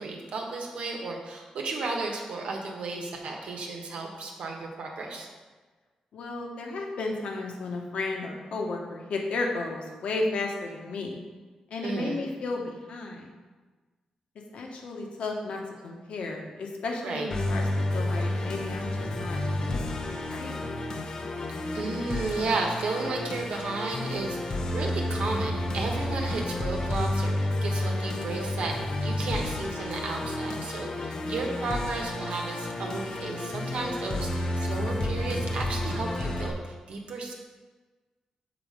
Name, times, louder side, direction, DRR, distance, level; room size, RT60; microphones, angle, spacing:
voice 1, 0.0-5.3 11.8-12.2 17.0-17.3 21.7-37.3, right 3 dB, 70° right, 1 dB, 1.1 m, -33 dB
voice 2, 6.1-11.2 11.7-13.3 14.5-17.7 17.9-20.6 31.2-31.4, left 3 dB, 75° left, 1 dB, 1.1 m, -33 dB
Musical instrument, 17.3-36.5, left 1 dB, 40° left, 0.6 m, -31 dB
7.1 x 4.1 x 5.0 m, 1.3 s
wide cardioid pair, 165°, 2 cm